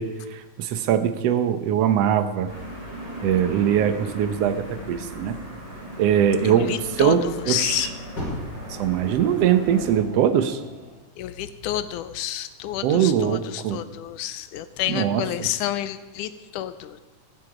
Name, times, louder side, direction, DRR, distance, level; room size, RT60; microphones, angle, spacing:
voice 1, 0.0-2.5 3.2-5.4 6.0-7.9 8.7-10.6 12.8-13.8 14.9-15.5, right 9 dB, 65° right, 10 dB, 1.7 m, -22 dB
sound 1, 2.4-10.0, equal, 25° right, 7.1 m, -38 dB
voice 2, 6.4-7.9 11.2-17.0, left 12 dB, 85° left, 12 dB, 2.2 m, -29 dB
Fire, 8.2-11.0 11.8-11.9, left 1 dB, 30° left, 7.5 m, -37 dB
16.5 x 13.0 x 5.0 m, 1.1 s
omnidirectional pair, 3.6 m